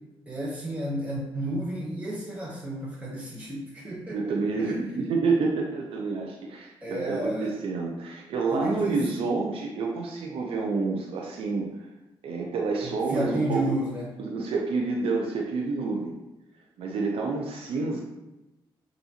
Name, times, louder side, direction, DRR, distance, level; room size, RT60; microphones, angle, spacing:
voice 1, 0.3-4.8 6.8-7.5 8.5-9.0 12.8-14.1, right 1 dB, 15° right, -5 dB, 1.0 m, -32 dB
voice 2, 4.1-11.9 12.2-13.7 14.2-16.2 16.8-18.0, right 4 dB, 70° right, 0 dB, 0.6 m, -28 dB
5.6 x 2.6 x 2.9 m, 1.0 s
supercardioid pair, 65°, 10 cm